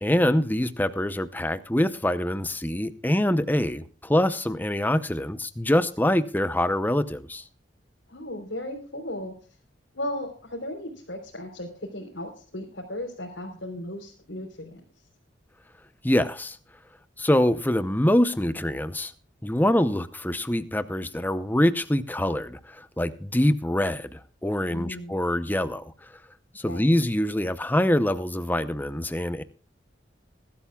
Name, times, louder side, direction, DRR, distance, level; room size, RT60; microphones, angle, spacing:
voice 1, 0.0-7.4 16.0-16.6 17.2-19.1 19.4-25.8 26.5-29.4, left 1 dB, 10° left, 0.7 m, -24 dB
voice 2, 8.1-9.3 9.9-14.8 24.7-25.2 26.7-26.8, left 1 dB, 90° left, 3.6 m, -36 dB
21.0 x 13.0 x 2.3 m
head